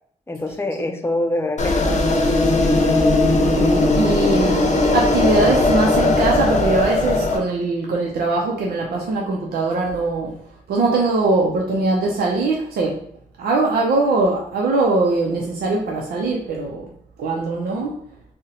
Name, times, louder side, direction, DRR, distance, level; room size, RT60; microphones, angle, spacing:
voice 1, 0.3-2.4, left 1 dB, 15° left, 0.5 m, -25 dB
sound 1, 1.6-7.4, left 2 dB, 50° left, 0.7 m, -18 dB
voice 2, 3.4-10.4 10.7-13.1 13.4-16.9 17.2-18.0, right 3 dB, 90° right, 0.5 m, -21 dB
2.7 x 2.1 x 3.8 m
cardioid pair, 50°, 15 cm